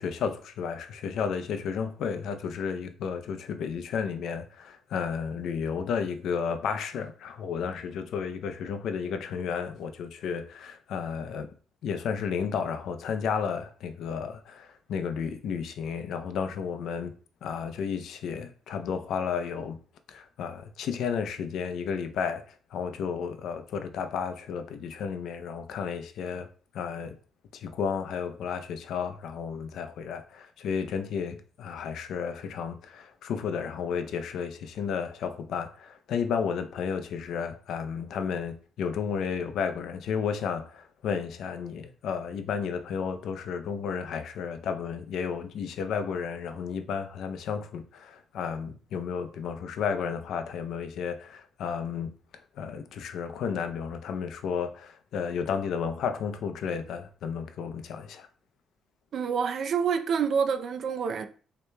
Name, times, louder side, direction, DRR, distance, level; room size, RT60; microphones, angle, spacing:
voice 1, 0.0-11.5 11.8-19.8 20.1-22.4 22.7-26.5 26.7-27.2 27.5-52.1 52.6-58.3, left 6 dB, 75° left, 0.6 m, -32 dB
voice 2, 59.1-61.3, right 6 dB, 60° right, 0.5 m, -27 dB
6.6 x 2.9 x 2.3 m
cardioid pair, 90°, 0 cm